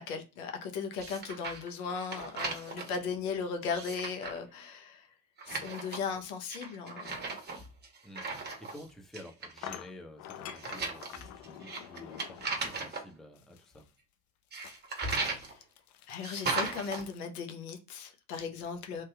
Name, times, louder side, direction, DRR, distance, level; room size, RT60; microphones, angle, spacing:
voice 1, 0.0-5.1 5.5-7.2 15.2-15.6 16.1-19.0, left 5 dB, 70° left, 0.9 m, -37 dB
sound 1, 1.0-1.7 2.0-3.0 3.6-4.4 5.4-6.1 6.5-8.8 9.1-9.7 10.5-13.0 14.5-15.5 16.2-17.0, right 3 dB, 20° right, 1.0 m, -37 dB
voice 2, 8.0-13.9, left 1 dB, ahead, 0.6 m, -51 dB
sound 2, 8.6-8.7 9.6-12.7 13.4-13.9 14.5-17.2, left 10 dB, 40° left, 0.5 m, -48 dB
3.3 x 2.7 x 2.3 m
figure-of-eight pair, 65°, 46 cm